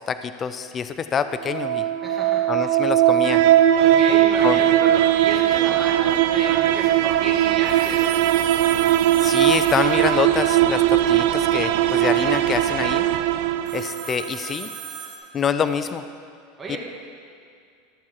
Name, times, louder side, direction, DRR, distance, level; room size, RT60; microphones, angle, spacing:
voice 1, 0.0-1.8 2.5-3.4 4.4-4.6 9.2-13.0 13.7-14.7 15.3-16.0 16.7-16.8, left 7 dB, 30° left, 11 dB, 0.4 m, -26 dB
sound 1, 1.3-14.3, right 12 dB, 70° right, 0.4 m, -19 dB
voice 2, 2.0-2.7 3.7-8.0 16.6-16.8, right 3 dB, 20° right, -3 dB, 2.3 m, -33 dB
Telephone, 7.6-10.7 13.6-15.2, right 7 dB, 50° right, 2.4 m, -37 dB
13.5 x 7.1 x 4.7 m, 2.3 s
supercardioid pair, 120°, 0 cm